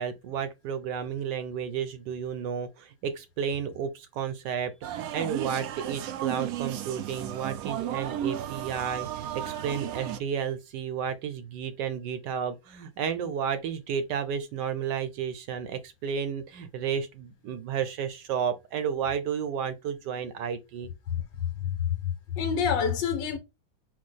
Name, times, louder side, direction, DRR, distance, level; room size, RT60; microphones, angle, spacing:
voice 1, 0.0-20.9, right 7 dB, 70° right, 1.1 m, -32 dB
sound 1, 4.8-10.2, right 11 dB, 90° right, 0.8 m, -34 dB
voice 2, 21.6-23.4, left 7 dB, 70° left, 1.6 m, -28 dB
4.6 x 2.3 x 4.1 m
omnidirectional pair, 2.1 m